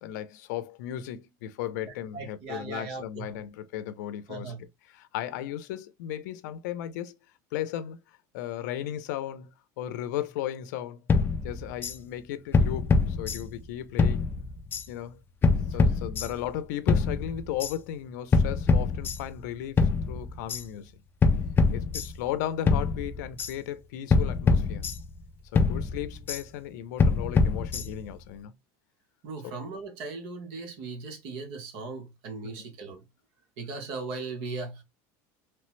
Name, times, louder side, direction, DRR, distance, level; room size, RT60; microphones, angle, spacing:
voice 1, 0.0-7.1 7.5-9.5 9.8-11.0 11.4-14.3 14.9-15.2 15.7-19.8 20.1-20.9 21.7-24.9 25.5-28.5 29.4-29.5 32.4-32.5, left 11 dB, 85° left, 0.4 m, -35 dB
voice 2, 2.1-3.3 4.3-4.6 29.2-33.0 33.6-34.8, right 3 dB, 65° right, 1.0 m, -38 dB
sound 1, 11.1-12.0 12.5-13.7 14.0-14.9 15.4-16.5 16.9-17.7 18.3-19.5 19.8-20.6 21.2-22.4 22.7-23.5 24.1-25.3 25.6-26.4 27.0-28.2, left 4 dB, 25° left, 0.4 m, -25 dB
3.1 x 2.0 x 3.0 m
supercardioid pair, 135°, 9 cm